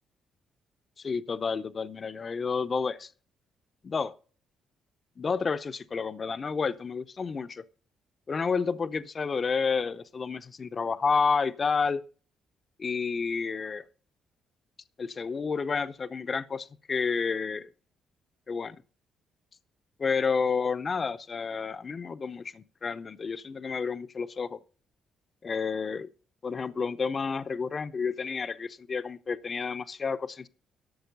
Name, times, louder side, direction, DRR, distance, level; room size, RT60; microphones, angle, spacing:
voice 1, 1.0-3.1 3.8-4.2 5.2-7.6 8.3-12.0 12.8-13.8 15.0-17.7 18.5-18.8 20.0-24.6 25.4-26.1 26.4-30.5, left 5 dB, 40° left, 0.6 m, -30 dB
12.5 x 6.3 x 5.2 m
cardioid pair, 90°, 0 cm